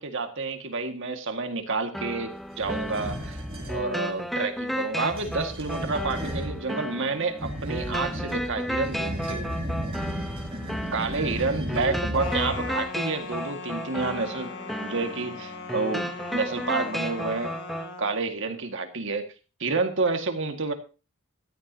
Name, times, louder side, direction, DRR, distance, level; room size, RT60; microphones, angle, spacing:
voice 1, 0.0-3.4 3.7-9.6 10.9-14.5 14.8-17.5 18.0-19.2 19.6-20.7, right 3 dB, 60° right, 6 dB, 1.9 m, -29 dB
sound 1, 1.9-17.9, equal, ahead, 0.9 m, -34 dB
sound 2, 2.5-3.8 5.0-6.6 7.4-12.9, equal, 25° right, 4.2 m, -34 dB
sound 3, 12.2-18.2, left 4 dB, 50° left, 2.4 m, -39 dB
16.0 x 13.5 x 2.9 m, 0.33 s
head